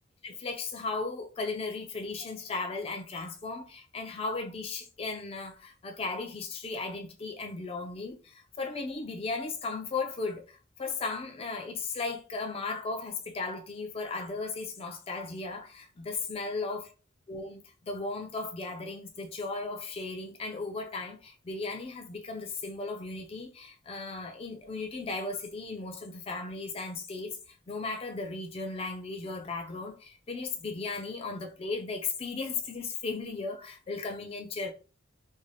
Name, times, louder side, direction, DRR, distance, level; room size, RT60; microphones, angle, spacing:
voice 1, 0.2-16.8 17.3-27.4 27.7-34.7, left 3 dB, 30° left, 0.4 m, -36 dB
2.6 x 2.1 x 3.1 m
head